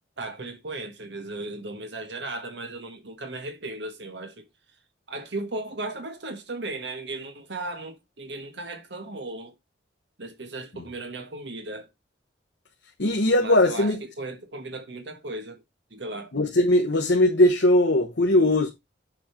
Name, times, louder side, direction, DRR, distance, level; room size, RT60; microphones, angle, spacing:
voice 1, 0.2-4.4 5.1-9.5 10.2-11.9 13.4-15.6 15.9-16.3, right 2 dB, 70° right, 1.5 m, -36 dB
voice 2, 13.0-14.0 16.3-18.7, left 1 dB, 70° left, 1.1 m, -20 dB
7.4 x 5.3 x 4.4 m
head